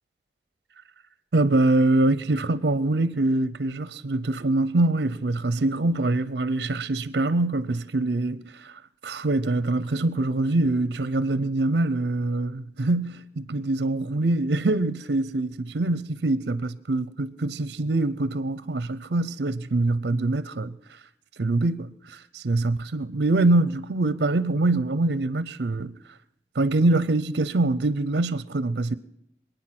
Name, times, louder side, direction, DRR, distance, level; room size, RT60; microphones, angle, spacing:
voice 1, 1.3-8.7 9.0-20.7 21.4-25.9 26.6-28.9, right 2 dB, 65° right, 0.6 m, -24 dB
25.5 x 9.2 x 6.0 m
head